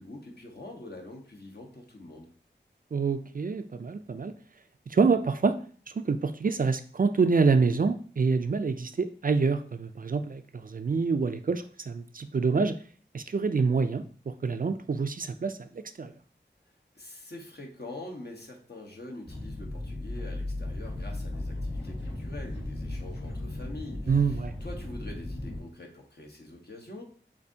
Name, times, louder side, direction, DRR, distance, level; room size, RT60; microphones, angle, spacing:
voice 1, 0.0-2.3 16.9-27.0, left 2 dB, 55° left, 1 dB, 1.1 m, -44 dB
voice 2, 2.9-4.3 4.9-5.6 5.9-12.8 13.1-14.0 14.4-15.6 16.0-16.1 24.1-24.5, right 4 dB, 45° right, 9 dB, 0.4 m, -26 dB
sound 1, 19.3-25.6, left 1 dB, 70° left, 1.7 m, -36 dB
6.7 x 2.6 x 2.7 m, 0.44 s
wide cardioid pair, 50°, 19 cm